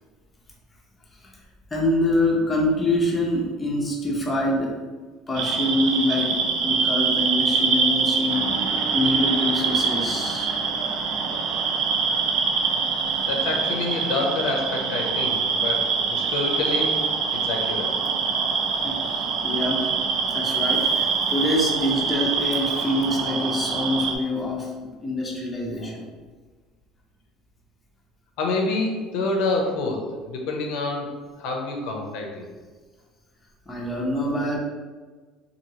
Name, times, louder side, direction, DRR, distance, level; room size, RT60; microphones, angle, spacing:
voice 1, 1.7-4.8 5.3-10.5 18.8-19.9 20.3-24.7 25.0-26.1 33.7-34.6, left 1 dB, 10° left, -3 dB, 0.5 m, -25 dB
sound 1, 5.3-24.1, right 5 dB, 55° right, 0.3 m, -24 dB
voice 2, 13.3-17.1 17.3-17.9 25.8-26.0 28.4-32.5, left 3 dB, 75° left, 2 dB, 0.5 m, -27 dB
2.9 x 2.6 x 2.7 m, 1.4 s
cardioid pair, 155°, 0 cm